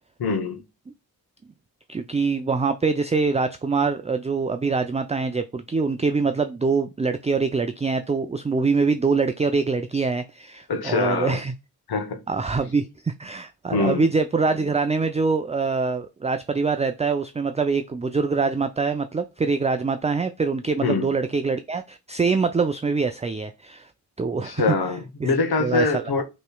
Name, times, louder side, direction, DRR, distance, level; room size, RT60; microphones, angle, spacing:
voice 1, 0.2-0.6 10.7-11.4 11.9-12.2 13.7-14.1 20.8-21.1 24.4-26.2, left 3 dB, 70° left, 1.0 m, -24 dB
voice 2, 1.9-11.5 12.3-23.9 24.2-24.6 25.2-25.3 25.6-26.0, right 4 dB, 15° right, 0.4 m, -24 dB
5.3 x 3.2 x 2.2 m
cardioid pair, 45°, 39 cm